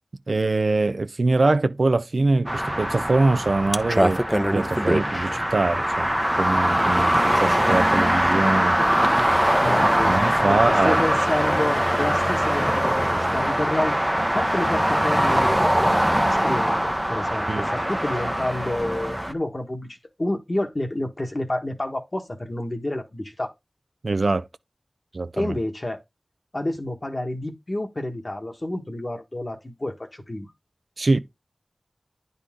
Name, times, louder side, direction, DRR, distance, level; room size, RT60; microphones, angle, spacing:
voice 1, 0.3-4.2 4.5-6.1 6.4-8.8 10.0-11.0 17.5-17.7 24.0-24.5 25.1-25.5 31.0-31.2, right 3 dB, 70° right, 0.5 m, -23 dB
sound 1, 2.5-19.3, equal, 5° right, 0.7 m, -22 dB
voice 2, 9.6-10.1 10.4-23.5 25.4-26.0 26.5-30.5, left 1 dB, 40° left, 1.5 m, -29 dB
9.8 x 4.1 x 3.7 m
wide cardioid pair, 60°, 0 cm